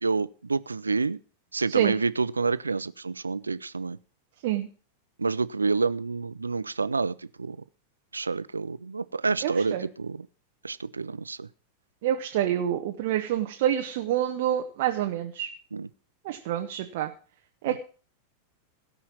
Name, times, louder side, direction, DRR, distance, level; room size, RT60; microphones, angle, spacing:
voice 1, 0.0-1.2 1.5-4.0 5.2-7.6 8.1-10.3 10.6-11.5 15.7-15.9 17.7-17.8, right 4 dB, 80° right, 17 dB, 0.5 m, -28 dB
voice 2, 9.4-9.9 12.0-15.5 16.2-17.1 17.6-17.8, right 11 dB, 50° right, 4 dB, 1.1 m, -27 dB
17.0 x 5.7 x 7.2 m, 0.39 s
figure-of-eight pair, 90°, 0 cm